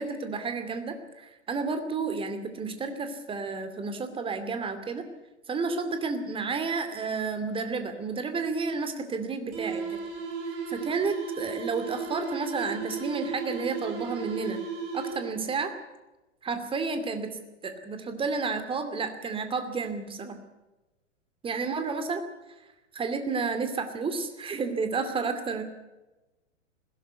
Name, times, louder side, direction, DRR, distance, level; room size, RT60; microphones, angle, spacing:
voice 1, 0.0-5.1 5.5-10.0 10.5-14.6 14.9-15.7 16.4-17.3 17.6-20.4 21.4-22.2 22.9-25.6, right 4 dB, 15° right, 8 dB, 2.5 m, -31 dB
sound 1, 9.5-15.5, right 5 dB, 35° right, 6.7 m, -35 dB
20.5 x 17.0 x 8.2 m, 1.1 s
figure-of-eight pair, 105°, 37 cm